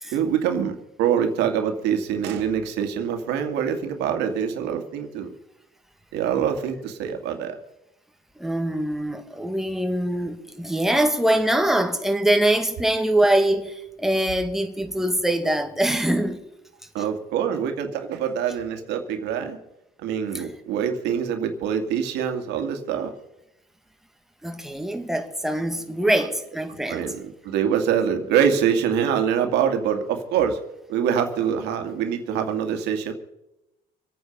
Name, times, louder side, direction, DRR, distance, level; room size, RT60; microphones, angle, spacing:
voice 1, 0.1-5.3 6.1-7.6 16.9-19.6 20.0-23.1 26.9-27.2 27.4-30.6 30.9-33.1, right 8 dB, 85° right, 2.3 m, -24 dB
voice 2, 8.4-16.4 20.3-20.4 24.4-27.0, right 1 dB, ahead, 1.8 m, -23 dB
25.0 x 9.1 x 5.4 m
cardioid pair, 110°, 17 cm